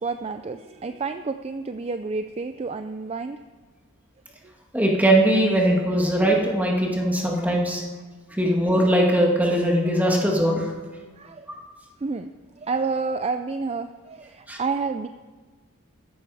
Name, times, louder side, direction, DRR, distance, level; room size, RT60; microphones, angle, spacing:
voice 1, 0.0-3.4 7.0-7.1 11.2-11.5 12.0-12.3 12.6-15.1, right 4 dB, 30° right, 9 dB, 0.4 m, -29 dB
voice 2, 4.7-7.8 8.4-10.7 14.5-14.6, right 1 dB, 5° right, -1 dB, 1.9 m, -20 dB
15.0 x 11.0 x 4.9 m, 1.4 s
head